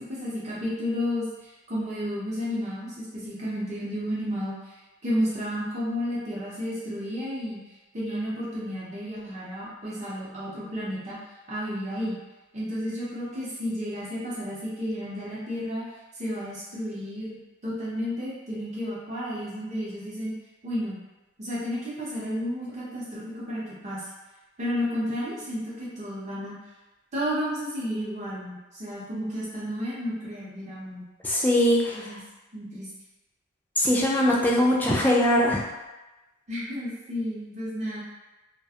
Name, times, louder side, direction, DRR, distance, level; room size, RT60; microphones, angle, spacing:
voice 1, 0.0-4.6 5.0-7.6 7.9-11.2 11.5-12.2 12.5-15.8 16.2-17.4 17.6-20.3 20.6-21.0 21.4-24.1 24.6-26.6 27.1-31.0 31.9-32.2 32.5-32.9 36.5-38.0, equal, 35° right, -7 dB, 0.7 m, -32 dB
voice 2, 31.2-32.0 33.8-35.6, left 1 dB, 10° left, -4 dB, 0.3 m, -21 dB
2.4 x 2.2 x 2.7 m, 1.1 s
head